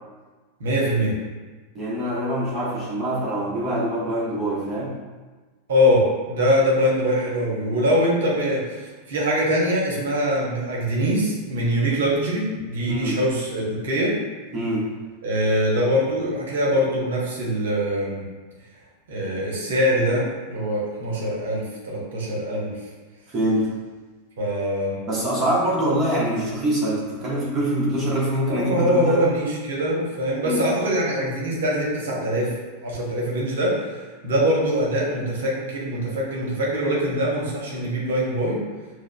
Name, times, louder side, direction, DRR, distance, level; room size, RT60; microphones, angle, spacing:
voice 1, 0.6-1.2 5.7-14.1 15.2-18.3 19.1-22.8 24.4-25.0 28.5-32.5 32.8-38.6, equal, 60° right, -3 dB, 1.0 m, -23 dB
voice 2, 1.7-4.9 12.9-13.2 14.5-14.9 23.3-23.7 25.1-29.2 30.4-30.6, right 1 dB, 25° right, -6 dB, 1.2 m, -24 dB
6.1 x 2.1 x 2.3 m, 1.3 s
figure-of-eight pair, 90°, 0 cm